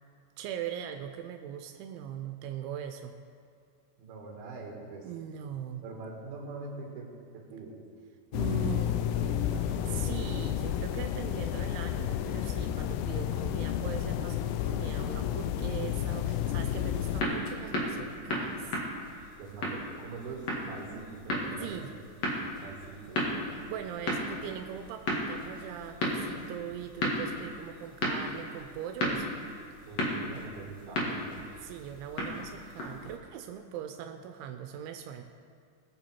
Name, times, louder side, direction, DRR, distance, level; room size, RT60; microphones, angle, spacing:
voice 1, 0.4-3.1 5.0-5.8 8.3-8.9 9.9-18.8 21.6-21.9 23.5-29.3 31.6-35.2, right 9 dB, 90° right, 6 dB, 3.0 m, -40 dB
voice 2, 4.0-5.1 5.8-7.1 7.3-7.8 8.7-10.2 19.4-21.8 22.6-23.2 29.9-31.4, right 4 dB, 60° right, -1 dB, 3.6 m, -43 dB
sound 1, 8.3-17.2, left 10 dB, 85° left, 2.4 m, -31 dB
sound 2, 16.7-33.1, left 1 dB, 50° left, 2.1 m, -35 dB
20.5 x 7.0 x 4.5 m, 2.2 s
omnidirectional pair, 5.3 m